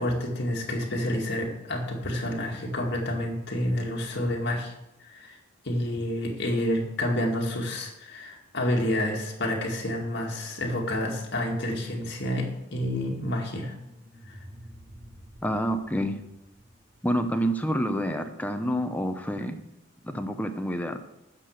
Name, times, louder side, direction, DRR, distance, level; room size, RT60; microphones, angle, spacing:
voice 1, 0.0-4.7 5.0-5.4 5.6-13.8 14.3-14.4, left 1 dB, 60° left, 0 dB, 2.2 m, -29 dB
sound 1, 13.3-18.2, equal, 30° right, 1.3 m, -50 dB
voice 2, 15.4-16.2 17.0-19.6 20.0-21.0, equal, 10° left, 7 dB, 0.8 m, -28 dB
9.8 x 6.8 x 6.6 m, 0.88 s
head